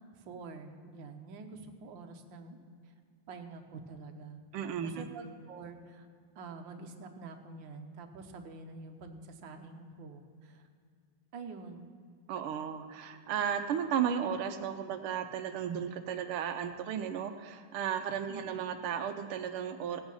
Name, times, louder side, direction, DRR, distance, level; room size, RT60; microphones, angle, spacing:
voice 1, 0.0-2.6 3.3-4.4 4.8-6.1 6.3-10.7 11.3-11.9 18.3-18.6, right 4 dB, 65° right, 5 dB, 1.6 m, -47 dB
voice 2, 4.5-5.1 12.3-20.0, right 8 dB, 85° right, 7 dB, 1.6 m, -34 dB
16.5 x 8.8 x 5.5 m, 2.2 s
omnidirectional pair, 2.3 m